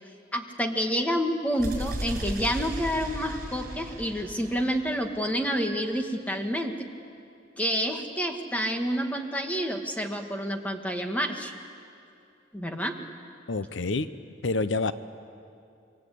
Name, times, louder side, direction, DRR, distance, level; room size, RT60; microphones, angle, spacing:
voice 1, 0.3-6.7 7.6-11.5 12.5-12.9, equal, 10° left, 4 dB, 1.6 m, -28 dB
sound 1, 1.6-5.5, right 1 dB, 50° right, 5.7 m, -36 dB
voice 2, 13.5-14.1 14.4-14.9, left 3 dB, 80° left, 13 dB, 0.7 m, -27 dB
27.0 x 24.0 x 8.4 m, 2.5 s
head